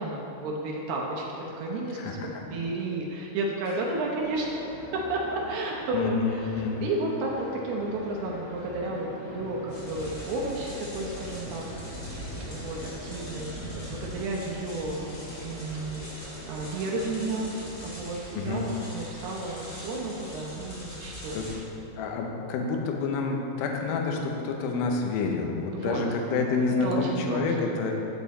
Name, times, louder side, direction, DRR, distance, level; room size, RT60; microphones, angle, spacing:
voice 1, 0.0-4.6 4.9-6.5 6.8-11.7 12.4-17.5 17.8-21.6 25.7-26.0 26.8-27.6, right 2 dB, 75° right, -2 dB, 2.5 m, -32 dB
voice 2, 1.9-2.4 5.9-6.9 18.4-18.7 21.3-21.5 22.0-28.1, left 4 dB, 80° left, 1 dB, 2.2 m, -28 dB
sound 1, 3.8-17.7, equal, 50° left, 1.6 m, -44 dB
sound 2, 9.7-21.5, equal, 35° left, 1.8 m, -42 dB
11.5 x 7.3 x 4.2 m, 2.9 s
omnidirectional pair, 5.3 m